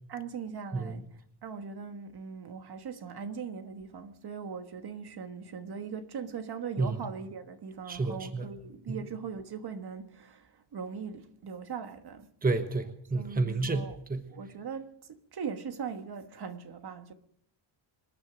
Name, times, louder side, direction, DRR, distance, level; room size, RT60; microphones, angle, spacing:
voice 1, 0.1-1.1 1.4-12.3 13.1-14.0 14.3-17.1, right 6 dB, 50° right, 1.5 m, -40 dB
voice 2, 7.9-8.4 8.9-9.0 12.4-14.2, right 3 dB, 15° right, 1.2 m, -30 dB
26.5 x 9.9 x 5.1 m
cardioid pair, 135°, 50 cm